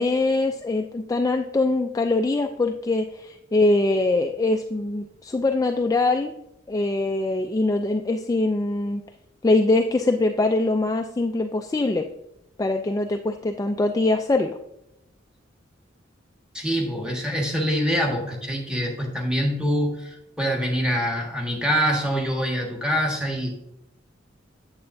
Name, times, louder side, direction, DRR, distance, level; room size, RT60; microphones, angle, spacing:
voice 1, 0.0-6.3 6.7-9.0 9.4-12.0 12.6-14.6, left 2 dB, 20° left, 5 dB, 0.3 m, -23 dB
voice 2, 16.5-23.6, equal, 5° right, 0 dB, 1.4 m, -25 dB
8.7 x 7.8 x 2.6 m, 0.82 s
head